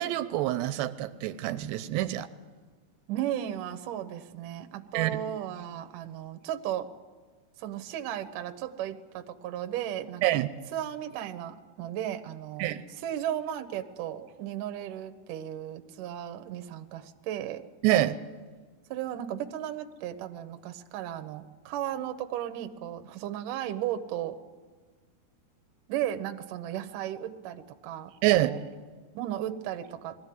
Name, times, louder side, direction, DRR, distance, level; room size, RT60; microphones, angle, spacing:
voice 1, 0.0-2.3 4.9-5.2 10.2-10.5 12.6-12.8 17.8-18.2 28.2-28.5, right 15 dB, 85° right, 11 dB, 2.9 m, -26 dB
voice 2, 3.1-6.9 7.6-10.5 10.7-17.6 18.9-24.4 25.9-28.6 29.1-30.2, right 11 dB, 70° right, 8 dB, 2.1 m, -35 dB
21.5 x 14.5 x 9.4 m, 1.4 s
omnidirectional pair, 4.9 m